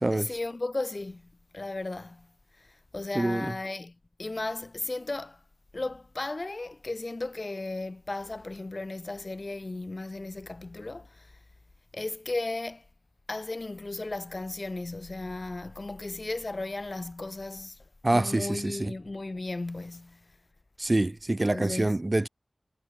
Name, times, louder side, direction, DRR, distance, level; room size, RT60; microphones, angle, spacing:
voice 1, 0.1-1.2 1.5-2.3 2.6-2.7 2.9-5.4 5.7-11.3 11.9-12.8 13.3-17.8 18.1-20.2 21.5-21.9, left 2 dB, 55° left, 1.5 m, -35 dB
voice 2, 3.1-3.5 18.0-18.9 20.8-22.3, right 2 dB, 40° right, 1.0 m, -26 dB
wide cardioid pair, 45°, 0 cm